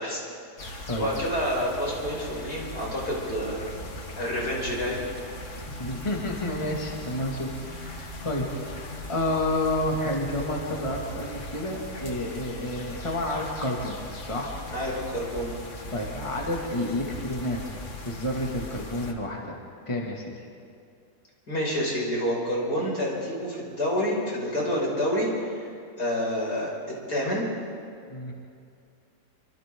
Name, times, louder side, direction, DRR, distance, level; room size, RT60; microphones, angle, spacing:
voice 1, 0.0-3.7 4.1-5.0 14.7-15.5 21.5-25.7 26.0-27.5, equal, 70° left, -4 dB, 6.4 m, -28 dB
sound 1, 0.6-19.1, left 1 dB, 50° left, 2.0 m, -39 dB
voice 2, 5.8-14.5 15.9-17.6 18.1-19.6 19.9-20.3 28.1-28.3, left 1 dB, 20° left, -2 dB, 2.4 m, -30 dB
28.0 x 26.0 x 3.8 m, 2.4 s
omnidirectional pair, 1.7 m